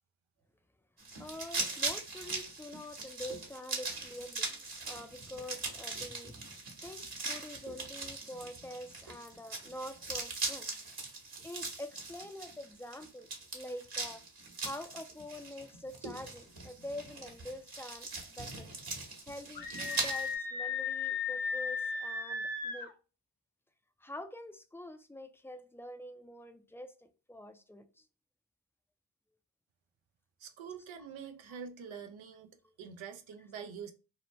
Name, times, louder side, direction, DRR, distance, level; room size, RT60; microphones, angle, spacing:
sound 1, 1.0-20.3, right 3 dB, 55° right, 1.1 m, -40 dB
voice 1, 1.2-6.4 6.8-10.7 11.4-14.2 14.6-18.7 19.2-22.9 24.0-28.1 31.0-31.1 32.6-32.7, left 1 dB, 5° left, 0.3 m, -46 dB
Screaming, 19.5-22.9, left 5 dB, 50° left, 0.7 m, -36 dB
voice 2, 30.4-32.5 32.8-33.9, right 7 dB, 85° right, 0.5 m, -45 dB
2.7 x 2.1 x 3.0 m
cardioid pair, 45°, 45 cm